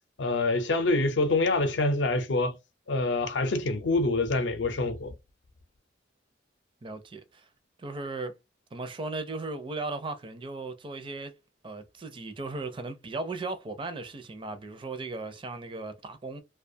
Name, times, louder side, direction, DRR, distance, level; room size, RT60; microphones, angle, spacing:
voice 1, 0.2-2.5 2.9-5.1, left 2 dB, 75° left, 0.6 m, -26 dB
voice 2, 6.8-7.5 7.8-8.3 8.7-11.3 11.6-16.4, right 3 dB, 30° right, 0.4 m, -37 dB
2.4 x 2.2 x 2.6 m
head